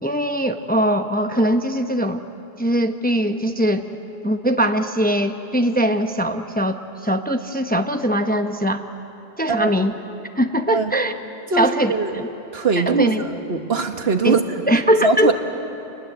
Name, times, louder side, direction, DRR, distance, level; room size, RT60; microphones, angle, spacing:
voice 1, 0.0-2.2 2.6-3.8 4.2-8.8 9.4-9.9 10.4-11.1 11.6-12.2 12.9-13.2 14.2-14.4 14.7-15.3, equal, 10° left, 6 dB, 0.7 m, -21 dB
voice 2, 11.5-12.2 12.5-14.4 14.7-15.3, right 4 dB, 75° right, 6 dB, 1.6 m, -21 dB
28.5 x 20.5 x 7.9 m, 3.0 s
omnidirectional pair, 1.0 m